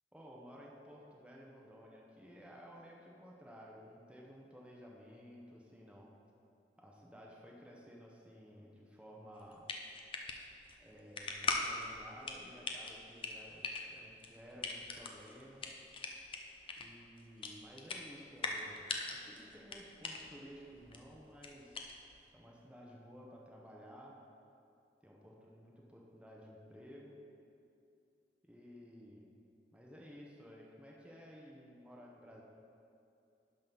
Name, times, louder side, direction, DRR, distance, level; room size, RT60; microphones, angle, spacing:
voice 1, 0.1-6.2 6.8-9.7 10.8-15.8 16.8-21.9 22.3-24.2 25.0-27.2 28.4-29.3 29.7-32.4, equal, 5° right, -3 dB, 0.7 m, -55 dB
sound 1, 9.3-22.3, left 3 dB, 30° left, 0.5 m, -42 dB
11.5 x 3.8 x 5.3 m, 2.6 s
head